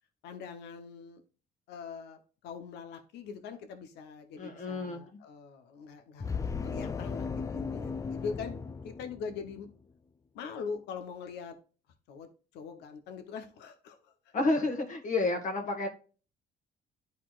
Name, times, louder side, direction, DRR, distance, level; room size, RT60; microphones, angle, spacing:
voice 1, 0.2-1.2 1.7-9.7 10.3-11.5 12.1-12.3 12.5-14.3, left 5 dB, 85° left, 1.0 m, -42 dB
voice 2, 4.4-5.0 14.3-15.9, left 2 dB, 50° left, 1.6 m, -30 dB
sound 1, 6.2-9.7, left 5 dB, 20° left, 0.4 m, -36 dB
11.5 x 4.2 x 2.5 m
cardioid pair, 110°, 17 cm